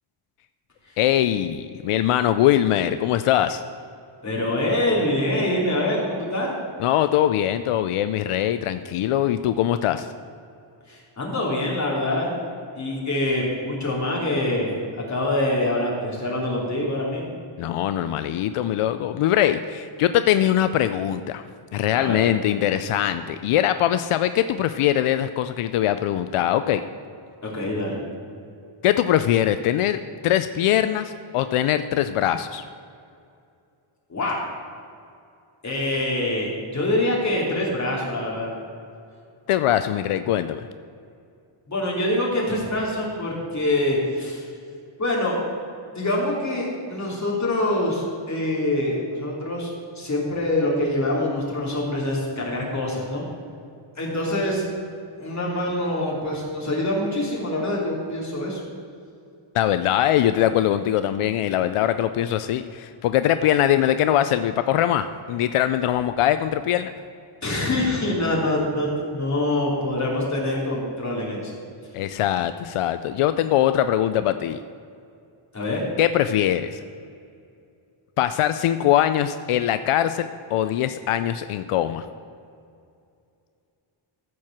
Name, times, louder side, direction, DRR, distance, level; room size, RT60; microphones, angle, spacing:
voice 1, 1.0-3.6 6.8-10.1 17.6-21.4 21.7-26.8 28.8-32.6 39.5-40.7 59.5-66.9 71.9-74.6 76.0-76.8 78.2-82.1, left 11 dB, 90° left, 11 dB, 0.6 m, -22 dB
voice 2, 4.2-6.5 10.9-12.4 12.7-14.8 15.1-17.3 21.9-22.2 27.4-28.0 34.1-34.4 35.6-38.5 41.7-44.5 45.0-45.3 45.9-49.7 49.9-53.2 54.0-54.6 55.2-58.6 67.4-71.5 75.5-75.8, left 1 dB, 35° left, -3 dB, 3.1 m, -25 dB
14.0 x 4.7 x 7.3 m, 2.5 s
wide cardioid pair, 125°, 50 cm